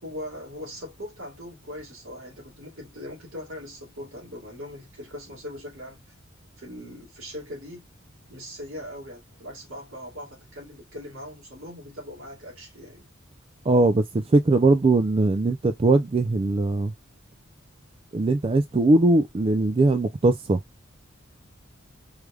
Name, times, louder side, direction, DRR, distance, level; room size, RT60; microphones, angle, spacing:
voice 1, 0.0-6.1 6.6-7.9 8.3-13.1, left 1 dB, 70° right, 2.4 m, -40 dB
voice 2, 13.7-16.9 18.1-20.6, right 2 dB, 30° right, 0.4 m, -20 dB
4.8 x 3.4 x 2.3 m
head